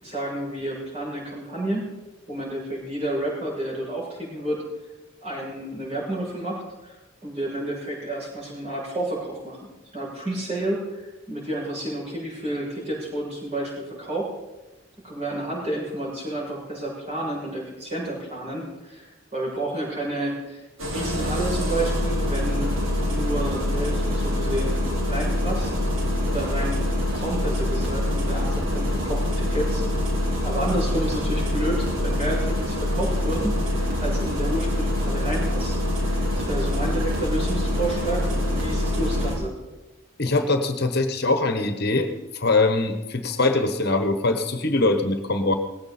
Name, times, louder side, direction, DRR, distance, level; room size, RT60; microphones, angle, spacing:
voice 1, 0.0-1.9 2.3-4.6 5.2-7.0 7.2-9.6 9.9-14.3 15.0-20.6 20.9-22.7 23.0-24.7 25.1-25.7 26.3-26.8 27.1-29.8 30.4-35.7 36.0-39.5, right 1 dB, 30° right, -5 dB, 7.2 m, -30 dB
Engine starting, 20.8-39.3, left 1 dB, 90° right, 4.5 m, -25 dB
voice 2, 40.2-42.1 42.3-45.6, left 2 dB, 50° left, 7 dB, 1.2 m, -22 dB
19.0 x 16.0 x 4.3 m, 1.1 s
head